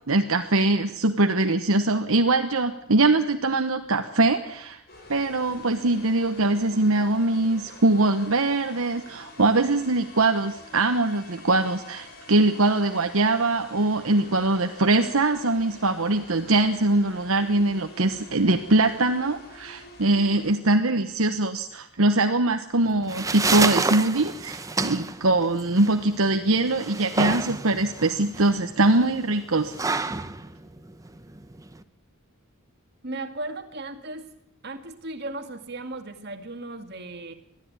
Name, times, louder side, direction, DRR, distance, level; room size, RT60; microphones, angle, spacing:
voice 1, 0.1-4.8 5.1-29.7, right 2 dB, 70° right, 6 dB, 1.2 m, -22 dB
sound 1, 4.9-20.5, left 2 dB, 45° left, 6.2 m, -47 dB
sound 2, 22.8-31.8, right 3 dB, 15° right, 0.8 m, -29 dB
voice 2, 33.0-34.3 34.6-37.3, right 2 dB, 45° right, 6 dB, 2.2 m, -36 dB
21.0 x 14.0 x 9.7 m, 0.77 s
head